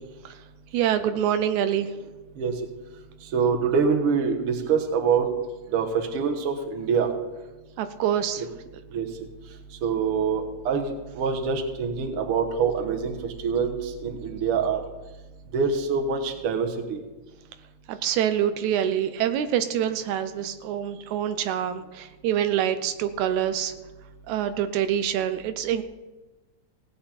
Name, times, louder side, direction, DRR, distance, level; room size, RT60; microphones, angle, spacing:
voice 1, 0.7-1.9 7.8-8.5 17.9-23.7 24.3-25.8, right 10 dB, 85° right, 10 dB, 2.0 m, -26 dB
voice 2, 3.3-5.3 5.7-7.1 8.4-8.5 8.9-9.1 9.8-13.2 13.4-14.8 15.5-17.0, right 6 dB, 55° right, 4 dB, 1.9 m, -25 dB
18.0 x 8.7 x 4.4 m, 1.1 s
omnidirectional pair, 3.3 m